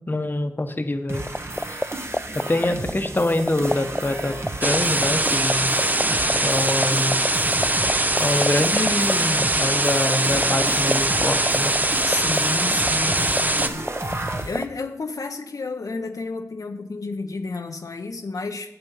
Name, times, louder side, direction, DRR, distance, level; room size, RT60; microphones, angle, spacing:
voice 1, 0.1-1.2 1.7-1.8 2.3-4.4 4.6-5.7 6.4-7.2 8.2-11.7, left 2 dB, 35° left, 7 dB, 0.9 m, -25 dB
sound 1, 1.1-14.6, right 2 dB, 45° right, 1.2 m, -33 dB
sound 2, 1.3-14.6, left 1 dB, 10° left, 0.3 m, -24 dB
sound 3, 4.6-13.7, right 1 dB, 30° right, 0.7 m, -22 dB
voice 2, 12.1-18.8, left 3 dB, 75° left, 4 dB, 0.7 m, -32 dB
9.6 x 6.9 x 5.5 m, 0.81 s
cardioid pair, 45°, 6 cm